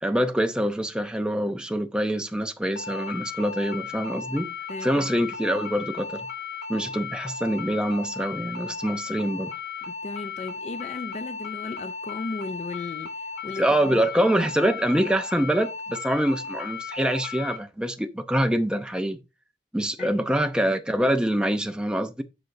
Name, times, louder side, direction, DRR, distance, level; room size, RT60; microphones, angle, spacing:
voice 1, 0.0-4.5 4.8-6.3 6.7-9.5 13.6-19.2 19.7-22.2, right 1 dB, 5° right, 0.7 m, -25 dB
sound 1, 2.8-17.6, left 5 dB, 75° left, 4.1 m, -36 dB
voice 2, 4.7-5.1 9.8-14.0 20.0-20.3, left 3 dB, 35° left, 0.3 m, -36 dB
12.0 x 5.2 x 2.7 m
head